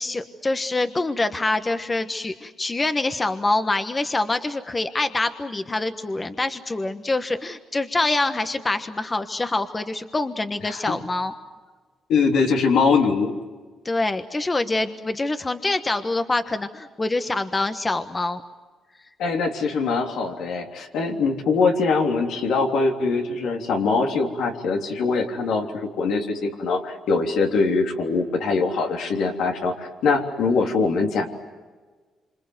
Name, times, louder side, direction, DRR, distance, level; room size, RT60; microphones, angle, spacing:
voice 1, 0.0-11.3 13.8-18.4, left 2 dB, 25° left, 9 dB, 1.3 m, -25 dB
voice 2, 10.6-11.0 12.1-13.3 19.2-31.3, left 4 dB, 80° left, 2 dB, 3.4 m, -22 dB
27.0 x 26.5 x 8.0 m, 1.4 s
cardioid pair, 90°, 0 cm